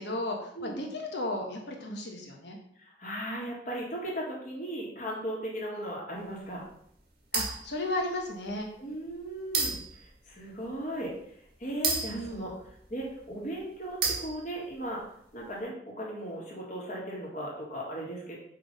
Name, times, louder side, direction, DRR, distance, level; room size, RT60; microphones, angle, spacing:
voice 1, 0.0-2.6 7.3-8.7 12.1-12.5, left 1 dB, 70° left, 1 dB, 1.4 m, -34 dB
voice 2, 3.0-6.6 8.8-9.8 10.3-11.1 11.6-12.5 12.9-15.0 15.3-18.4, right 1 dB, 40° left, -4 dB, 2.0 m, -37 dB
sound 1, 7.3-7.8 8.5-8.6 9.5-10.1 11.8-13.0 14.0-14.7, right 5 dB, 60° right, 1.4 m, -31 dB
5.5 x 3.9 x 5.4 m, 0.70 s
head